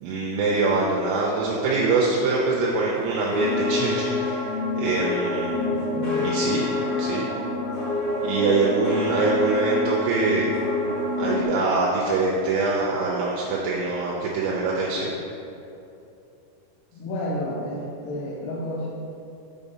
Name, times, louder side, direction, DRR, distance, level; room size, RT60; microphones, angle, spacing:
voice 1, 0.0-5.5 6.2-6.7 7.0-7.3 8.2-10.5 11.2-15.1, right 3 dB, 80° right, -3 dB, 2.8 m, -24 dB
La volée cloches d'Amiens Cathedral france, 3.3-11.4, left 3 dB, 65° left, 1.9 m, -26 dB
voice 2, 5.7-6.3 16.9-18.9, left 1 dB, 85° left, -7 dB, 3.5 m, -31 dB
7.5 x 4.1 x 5.4 m, 2.8 s
omnidirectional pair, 5.8 m